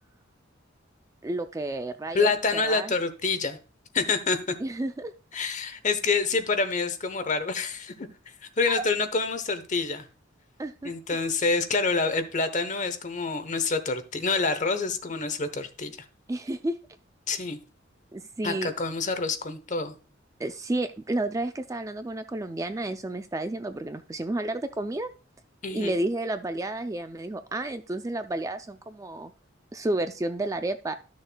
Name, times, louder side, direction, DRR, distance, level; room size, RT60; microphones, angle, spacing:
voice 1, 1.2-2.9 4.6-5.1 8.7-8.8 10.6-10.9 16.3-16.7 18.1-18.7 20.4-25.1 25.7-29.3 29.7-30.9, right 2 dB, 15° right, 9 dB, 0.3 m, -31 dB
voice 2, 2.1-3.6 3.9-4.4 5.3-8.1 8.6-10.1 10.8-16.0 17.3-17.6 18.4-19.9 25.6-26.0, left 4 dB, 40° left, 9 dB, 0.9 m, -27 dB
13.0 x 6.4 x 2.2 m, 0.35 s
head